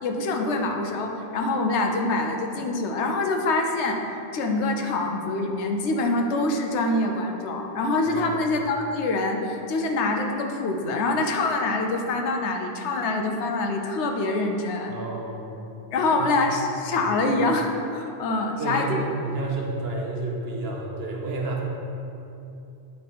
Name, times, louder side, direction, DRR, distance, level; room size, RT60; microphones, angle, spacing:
voice 1, 0.0-4.0 4.3-14.9 15.9-19.0, left 2 dB, 75° left, 3 dB, 1.0 m, -25 dB
voice 2, 8.1-8.5 14.9-15.5 16.0-16.5 16.9-17.1 18.6-21.6, right 2 dB, 60° right, 0 dB, 1.0 m, -31 dB
8.7 x 3.6 x 4.1 m, 2.8 s
omnidirectional pair, 1.2 m